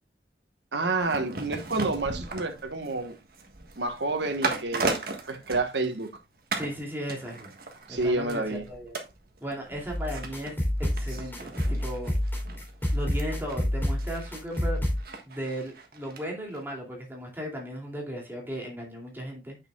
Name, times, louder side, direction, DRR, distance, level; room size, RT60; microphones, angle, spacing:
voice 1, 0.7-3.1 3.8-6.1 7.9-8.6, right 3 dB, 80° right, 1.4 m, -29 dB
sound 1, 1.0-6.2 6.5-6.8 7.1-16.2 16.5-16.6, right 3 dB, 55° right, 1.5 m, -37 dB
voice 2, 6.5-7.5 7.9-9.0 9.4-12.1 12.9-14.8 15.3-19.6, equal, 10° right, 2.7 m, -36 dB
sound 2, 9.9-15.0, left 1 dB, 10° left, 2.9 m, -28 dB
9.0 x 6.6 x 2.3 m
head